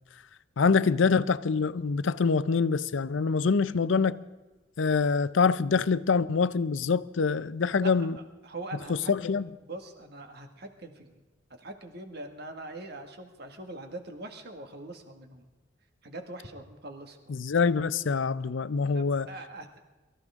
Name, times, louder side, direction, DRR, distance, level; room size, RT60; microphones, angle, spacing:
voice 1, 0.6-4.2 4.8-8.2 9.1-9.5 17.3-19.3, left 5 dB, 90° left, 0.6 m, -25 dB
voice 2, 7.8-9.1 9.6-11.1 11.6-15.5 16.0-17.3 18.9-19.7, right 2 dB, 60° right, 1.9 m, -42 dB
23.5 x 14.5 x 3.6 m
head